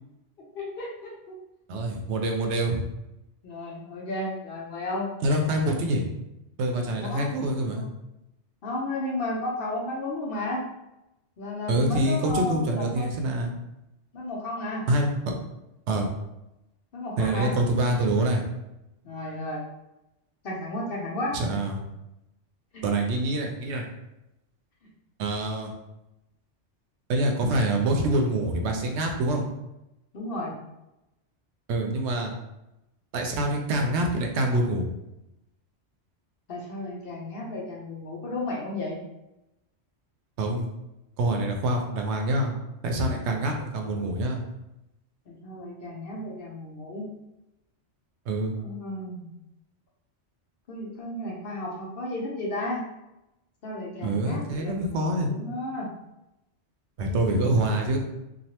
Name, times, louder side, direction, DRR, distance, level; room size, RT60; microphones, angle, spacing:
voice 1, 0.5-1.4 2.7-2.8 3.4-5.2 7.0-7.3 7.8-7.9 8.6-10.6 11.4-13.0 14.1-14.9 16.9-18.1 19.0-19.6 20.4-21.4 22.7-22.8 30.1-30.5 36.5-39.0 45.3-47.1 48.6-49.3 50.7-52.8 53.6-55.9 57.1-57.8, left 1 dB, 60° left, -2 dB, 0.8 m, -33 dB
voice 2, 1.7-2.8 5.2-6.0 6.6-7.8 11.7-13.5 14.9-15.1 15.9-16.1 17.2-18.4 21.3-21.8 22.8-23.9 25.2-25.7 27.1-29.4 31.7-32.3 33.1-34.9 40.4-40.7 41.2-42.5 42.8-44.4 48.3-48.5 54.0-55.3 57.0-58.0, right 1 dB, 75° right, 2 dB, 0.8 m, -25 dB
3.1 x 2.4 x 2.8 m, 0.91 s
omnidirectional pair, 1.2 m